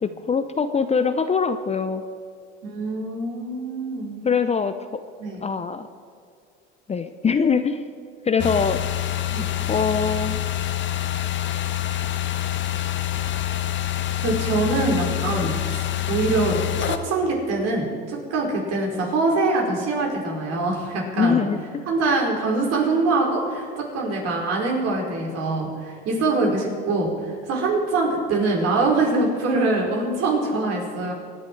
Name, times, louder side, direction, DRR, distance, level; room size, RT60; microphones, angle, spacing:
voice 1, 0.0-2.0 4.2-5.0 5.4-5.9 6.9-7.9 8.2-8.8 9.7-10.4 15.3-15.5 21.2-21.8, left 5 dB, 20° left, 10 dB, 0.7 m, -23 dB
voice 2, 2.6-4.2 5.2-5.4 9.3-9.5 14.2-21.4 21.9-31.1, right 3 dB, 55° right, -1 dB, 4.8 m, -24 dB
sound 1, 8.4-17.0, left 12 dB, 40° left, 1.0 m, -26 dB
24.0 x 10.0 x 4.7 m, 2.3 s
supercardioid pair, 95°, 30 cm